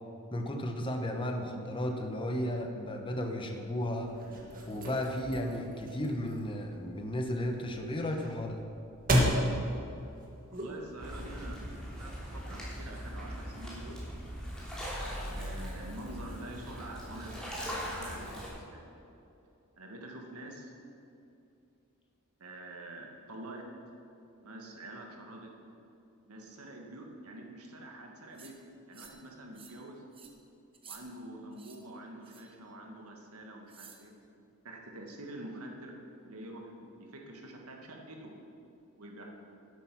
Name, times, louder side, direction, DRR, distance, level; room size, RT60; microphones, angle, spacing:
voice 1, 0.3-4.1 4.7-8.6, left 1 dB, 25° left, 3 dB, 1.1 m, -34 dB
sound 1, 4.0-11.1, equal, 40° right, 1.8 m, -34 dB
voice 2, 10.5-14.0 15.0-18.9 19.8-20.7 22.4-23.7 24.4-25.5 26.3-30.0 30.9-34.1 34.6-35.9 36.2-38.3 39.0-39.2, right 1 dB, 90° right, 1 dB, 1.7 m, -46 dB
sound 2, 11.0-18.5, equal, 5° left, 2.9 m, -40 dB
sound 3, 28.3-28.5 28.9-29.2 29.5-29.8 30.1-30.3 30.7-31.0 31.5-31.8 32.2-32.5 33.7-34.0, right 6 dB, 25° right, 1.0 m, -52 dB
11.5 x 8.2 x 6.0 m, 2.7 s
head